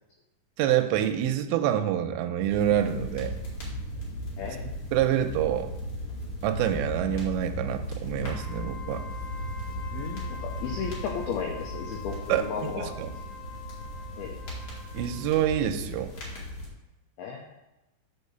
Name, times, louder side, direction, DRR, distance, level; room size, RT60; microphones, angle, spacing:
voice 1, 0.6-3.3 4.9-5.7 6.4-9.0 12.3-13.1 14.9-16.1, right 11 dB, 85° right, 7 dB, 2.7 m, -27 dB
sound 1, 2.5-16.7, equal, 50° left, 2.9 m, -36 dB
voice 2, 4.4-4.7 9.9-12.9 14.2-14.3 17.2-17.5, left 6 dB, 85° left, 1 dB, 2.2 m, -34 dB
Wind instrument woodwind instrument, 8.2-15.6, left 6 dB, 30° right, 1.7 m, -45 dB
6.3 x 5.0 x 6.7 m, 1.0 s
omnidirectional pair, 5.4 m